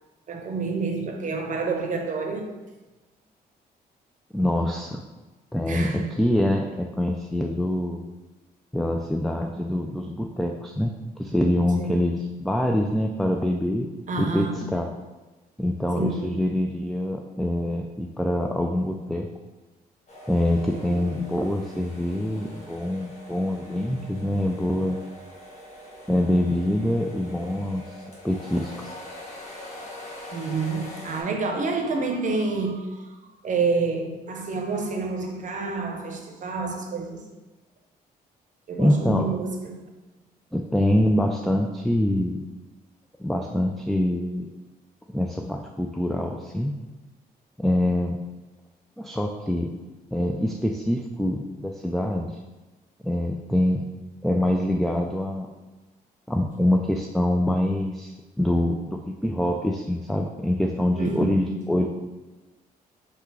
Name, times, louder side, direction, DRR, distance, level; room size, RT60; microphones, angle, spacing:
voice 1, 0.3-2.5 5.7-6.1 11.8-12.1 14.1-14.7 16.0-16.4 20.9-21.1 30.3-33.2 33.4-37.2 38.7-39.8 61.0-61.6, right 4 dB, 50° right, 4 dB, 0.7 m, -28 dB
voice 2, 4.3-5.0 5.5-8.0 8.7-10.9 11.2-13.9 14.2-14.5 14.7-14.9 15.6-19.3 20.3-25.0 26.1-28.9 38.8-39.3 40.5-42.4 43.2-44.5 45.1-46.7 47.6-48.2 49.0-49.7 50.1-52.3 53.0-53.8 54.2-55.5 56.3-61.9, left 1 dB, ahead, 2 dB, 0.3 m, -25 dB
sound 1, 20.1-31.2, left 1 dB, 45° left, 1.3 m, -43 dB
3.4 x 2.9 x 4.7 m, 1.1 s
cardioid pair, 80°, 17 cm